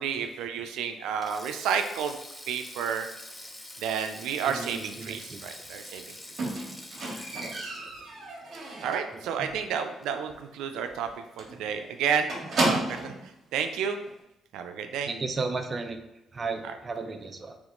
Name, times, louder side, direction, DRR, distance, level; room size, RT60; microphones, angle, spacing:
voice 1, 0.0-2.1 2.5-3.1 3.8-6.2 8.8-12.3 12.6-14.0 14.5-15.1 16.6-16.7, right 7 dB, 90° right, 6 dB, 0.3 m, -31 dB
Sink (filling or washing), 1.1-9.5 9.8-10.0 11.2-11.5, left 1 dB, 10° left, 0.6 m, -45 dB
voice 2, 4.4-5.4 7.4-7.6 9.4-9.5 15.1-16.0 16.3-17.6, right 4 dB, 35° right, 6 dB, 0.5 m, -34 dB
Squeak, 6.4-9.2 9.5-9.9 10.2-10.3 10.6-10.7 11.0-11.1 11.4-13.2 14.1-14.2, right 2 dB, 55° right, 1.2 m, -32 dB
3.4 x 3.1 x 3.7 m, 0.91 s
cardioid pair, 90°, 0 cm